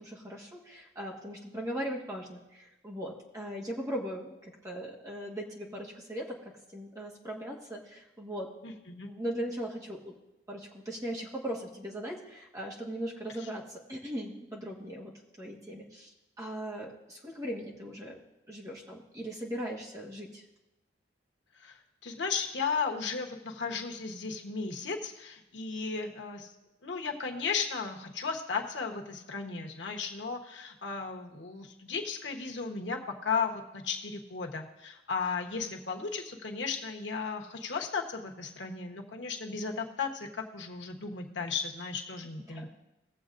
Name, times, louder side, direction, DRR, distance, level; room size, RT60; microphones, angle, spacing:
voice 1, 0.0-10.2 10.5-18.2 18.5-20.4 42.5-42.7, equal, 20° right, -3 dB, 1.5 m, -39 dB
voice 2, 8.6-9.1 13.4-13.5 21.6-26.5 26.8-42.7, left 5 dB, 90° left, 3 dB, 1.2 m, -35 dB
19.0 x 7.4 x 2.6 m, 0.96 s
head